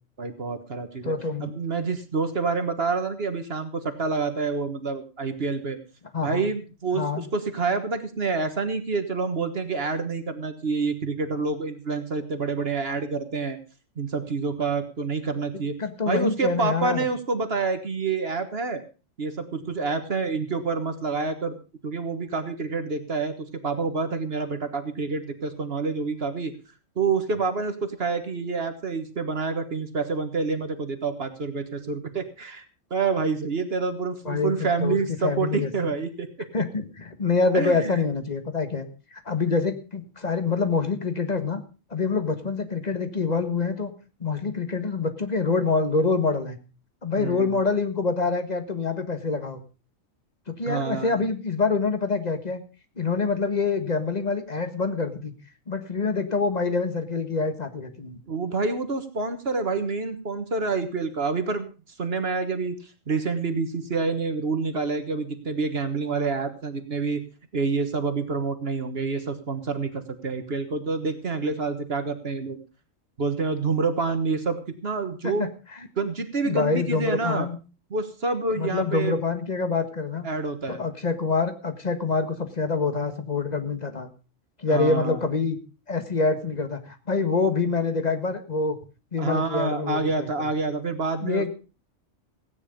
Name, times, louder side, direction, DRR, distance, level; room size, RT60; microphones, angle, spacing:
voice 1, 0.2-1.1 1.4-5.8 6.2-13.6 14.0-15.7 16.1-18.8 19.2-21.5 21.8-26.5 27.0-32.6 32.9-36.5 37.5-38.0 47.1-47.5 50.6-51.2 58.2-61.7 62.0-62.8 63.1-67.2 67.5-72.6 73.2-75.5 76.0-77.5 77.9-79.2 80.2-80.8 84.7-85.3 89.2-91.5, right 4 dB, 50° right, 9 dB, 1.6 m, -27 dB
voice 2, 1.0-1.5 6.1-6.5 6.9-7.2 15.8-17.1 34.2-35.9 36.5-38.9 39.1-41.6 41.9-43.9 44.2-46.6 47.0-49.6 50.5-52.6 53.0-55.3 55.7-58.2 75.2-75.5 76.4-77.6 78.5-80.2 80.7-84.1 84.6-85.6 85.9-88.8 89.1-90.5 91.2-91.5, left 4 dB, 35° left, 8 dB, 1.7 m, -26 dB
16.5 x 9.5 x 5.2 m, 0.34 s
omnidirectional pair, 1.3 m